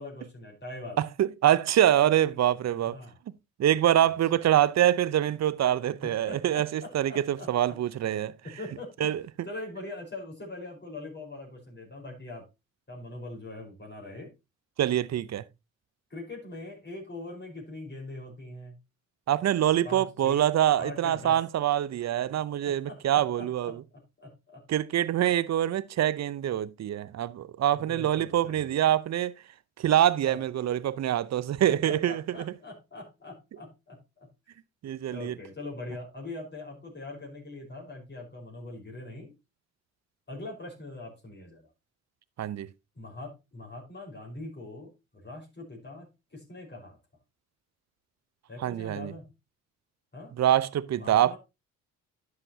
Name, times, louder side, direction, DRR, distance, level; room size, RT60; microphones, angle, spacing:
voice 1, 0.0-1.0 2.3-2.5 2.8-3.2 4.0-4.4 6.0-7.8 8.4-9.1 9.4-12.4 12.9-14.3 16.1-18.8 19.8-20.4 20.8-21.4 22.6-24.6 27.7-28.8 30.2-30.4 31.7-34.3 35.1-39.3 40.3-41.7 42.9-47.0 48.5-49.3 50.1-50.3 51.0-51.4, left 2 dB, 30° left, 4.8 m, -42 dB
voice 2, 1.0-3.0 3.6-8.3 9.0-9.2 14.8-15.4 19.3-23.7 24.7-29.3 29.8-32.2 34.8-35.3 42.4-42.7 48.6-49.1 50.4-51.4, right 11 dB, 45° right, 0.8 m, -25 dB
11.0 x 7.8 x 2.8 m
hypercardioid pair, 50°, 37 cm